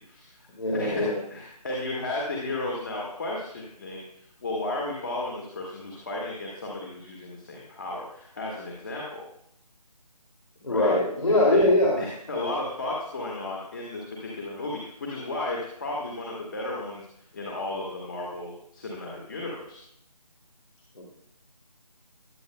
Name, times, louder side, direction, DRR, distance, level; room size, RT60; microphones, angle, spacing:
voice 1, 0.0-0.4 0.7-9.2 10.7-11.0 11.5-11.7 12.0-19.8, left 2 dB, 30° left, -3 dB, 1.7 m, -34 dB
voice 2, 0.6-1.2 10.6-11.9 21.0-21.1, left 1 dB, 50° left, -2 dB, 2.5 m, -22 dB
19.5 x 8.9 x 2.2 m, 0.71 s
figure-of-eight pair, 170°, 21 cm